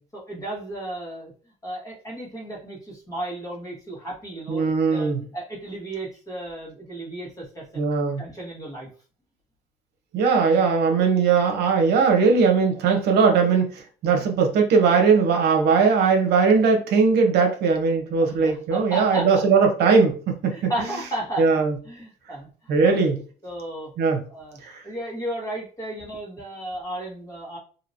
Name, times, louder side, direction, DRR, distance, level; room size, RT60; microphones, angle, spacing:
voice 1, 0.1-1.3 1.6-7.9 8.2-8.9 17.5-17.6 18.2-19.3 20.5-21.5 21.8-23.9 24.3-24.6 24.8-27.6, right 1 dB, 20° left, -4 dB, 1.5 m, -34 dB
voice 2, 4.5-5.2 7.8-8.2 10.1-13.7 14.0-20.7 21.4-21.7 22.7-23.2 24.0-24.2 24.6-24.8, right 5 dB, 75° right, 4 dB, 0.8 m, -19 dB
3.0 x 2.7 x 2.7 m, 0.39 s
cardioid pair, 110°, 17 cm